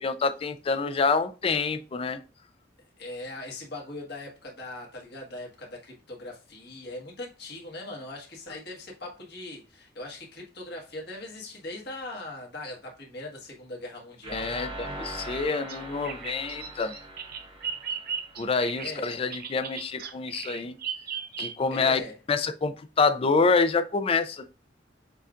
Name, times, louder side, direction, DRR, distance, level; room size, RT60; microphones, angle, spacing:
voice 1, 0.0-2.2 14.3-16.9 18.4-20.8 21.4-22.0 22.3-24.4, left 4 dB, 30° left, 0.4 m, -27 dB
voice 2, 3.0-14.7 18.8-19.1 21.7-22.2, left 2 dB, 60° left, 1.5 m, -40 dB
sound 1, 14.2-19.1, right 1 dB, 30° right, 0.9 m, -41 dB
Bird vocalization bird call bird song, 15.3-21.9, right 7 dB, 55° right, 0.5 m, -37 dB
6.8 x 2.3 x 2.5 m
head